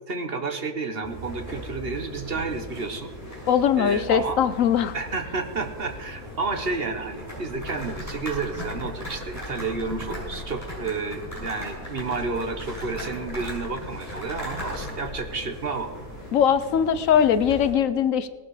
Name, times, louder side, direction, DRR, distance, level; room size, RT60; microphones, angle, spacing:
voice 1, 0.1-3.1 3.8-4.4 4.9-15.9, right 4 dB, 45° right, 7 dB, 1.4 m, -31 dB
sound 1, 1.0-17.7, equal, 10° left, 5.8 m, -38 dB
voice 2, 3.5-4.9 16.3-18.3, left 8 dB, 75° left, 14 dB, 1.1 m, -21 dB
18.5 x 12.0 x 4.9 m, 1.4 s
omnidirectional pair, 1.4 m